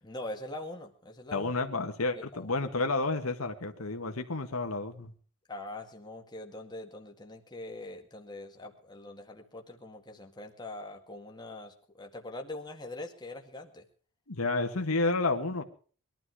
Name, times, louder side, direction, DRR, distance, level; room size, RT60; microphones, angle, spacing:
voice 1, 0.0-1.5 2.3-2.5 5.5-13.9, left 2 dB, 20° left, 2 dB, 1.9 m, -43 dB
voice 2, 1.3-5.1 14.3-15.6, left 3 dB, 80° left, 5 dB, 1.7 m, -30 dB
21.0 x 12.5 x 4.9 m, 0.42 s
head